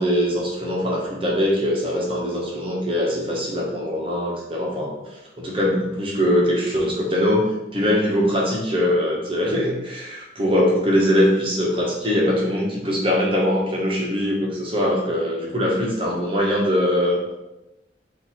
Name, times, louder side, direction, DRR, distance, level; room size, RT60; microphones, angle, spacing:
voice 1, 0.0-5.0 5.4-17.2, equal, 30° right, -2 dB, 1.0 m, -22 dB
4.5 x 2.7 x 4.2 m, 0.95 s
head